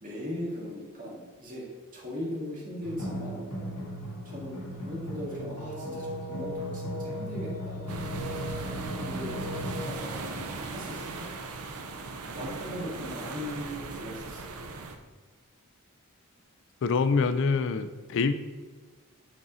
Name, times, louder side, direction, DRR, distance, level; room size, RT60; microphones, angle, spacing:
voice 1, 0.0-1.7 1.9-3.5 4.2-8.0 9.0-11.3 12.3-14.5, equal, 35° right, -5 dB, 1.9 m, -39 dB
sound 1, 2.8-10.0, equal, 80° left, 1.4 m, -36 dB
sound 2, 7.9-15.0, right 3 dB, 80° right, 0.6 m, -38 dB
voice 2, 16.8-18.3, left 4 dB, 55° left, 11 dB, 0.3 m, -25 dB
7.5 x 4.1 x 4.0 m, 1.3 s
head